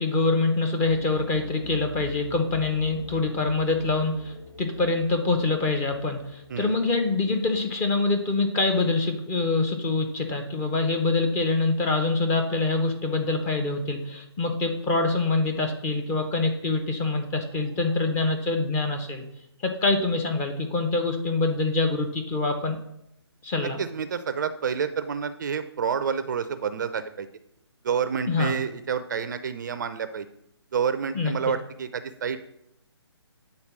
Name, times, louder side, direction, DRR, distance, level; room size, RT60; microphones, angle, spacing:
voice 1, 0.0-19.2 19.6-22.8 23.4-23.8 28.3-28.5 31.1-31.3, left 3 dB, 15° left, 4 dB, 0.7 m, -25 dB
sound 1, 0.8-10.3 10.6-10.7 10.9-11.0 17.4-17.9, left 3 dB, 80° left, 2.2 m, -46 dB
voice 2, 23.6-27.3 27.8-30.3 30.7-32.4, right 7 dB, 40° right, 11 dB, 0.4 m, -29 dB
8.7 x 4.0 x 5.9 m, 0.79 s
figure-of-eight pair, 145°, 15 cm